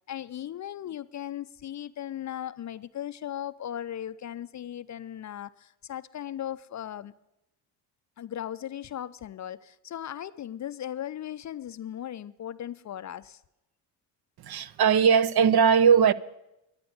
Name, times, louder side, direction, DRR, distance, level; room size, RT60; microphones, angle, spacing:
voice 1, 0.1-7.1 8.2-13.4, left 11 dB, 35° left, 0.5 m, -37 dB
voice 2, 14.4-16.1, right 7 dB, 50° right, 0.8 m, -19 dB
11.0 x 9.5 x 9.3 m
supercardioid pair, 65°, 49 cm